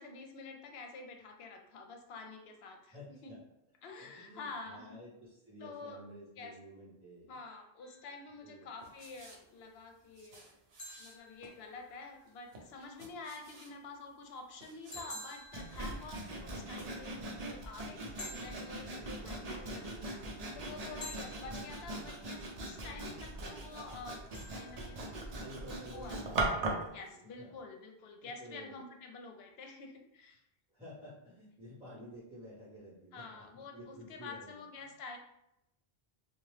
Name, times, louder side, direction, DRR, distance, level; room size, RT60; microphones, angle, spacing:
voice 1, 0.0-2.9 3.2-3.3 3.8-5.0 5.6-6.0 6.4-6.6 7.3-10.5 11.0-20.2 20.5-24.2 24.5-25.1 25.9-26.2 26.9-30.4 32.0-32.1 33.1-35.2, left 3 dB, 75° left, 3 dB, 0.8 m, -48 dB
voice 2, 2.9-3.4 4.0-7.4 8.4-8.6 18.9-19.4 21.4-21.7 25.3-27.6 28.2-28.8 30.7-34.7, equal, 5° right, -13 dB, 1.3 m, -52 dB
sound 1, 7.8-8.6 10.8-12.2 14.9-16.7 18.2-19.6 21.0-22.4 24.3-25.6, left 1 dB, 50° left, 0.7 m, -51 dB
sound 2, 8.8-17.1 17.3-17.5, right 2 dB, 75° right, 0.9 m, -57 dB
Sawing, 15.5-26.9, right 2 dB, 50° right, 0.5 m, -40 dB
2.8 x 2.2 x 3.2 m, 0.81 s
omnidirectional pair, 1.1 m